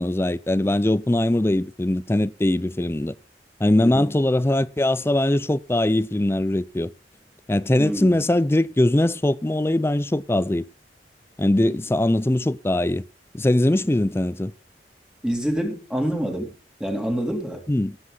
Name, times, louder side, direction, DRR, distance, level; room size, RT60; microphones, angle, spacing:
voice 1, 0.0-3.1 3.6-6.9 7.5-10.7 11.4-13.0 13.3-14.5 17.7-18.0, left 1 dB, 15° left, 0.5 m, -21 dB
voice 2, 3.8-4.2 7.8-8.1 15.2-16.5 16.8-17.6, equal, 5° right, 2.7 m, -26 dB
17.0 x 7.8 x 3.9 m
head